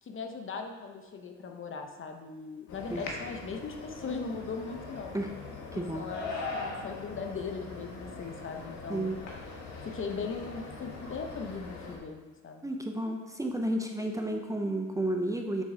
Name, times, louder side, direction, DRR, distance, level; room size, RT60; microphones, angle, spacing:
voice 1, 0.0-5.1 5.7-9.2 9.8-12.7, left 4 dB, 45° left, 4 dB, 0.8 m, -39 dB
sound 1, 2.7-12.0, left 3 dB, 75° left, 1.4 m, -41 dB
voice 2, 5.7-6.1 8.9-9.2 12.6-15.6, right 1 dB, 10° right, 3 dB, 0.7 m, -32 dB
7.4 x 3.8 x 5.0 m, 1.2 s
cardioid pair, 90°, 30 cm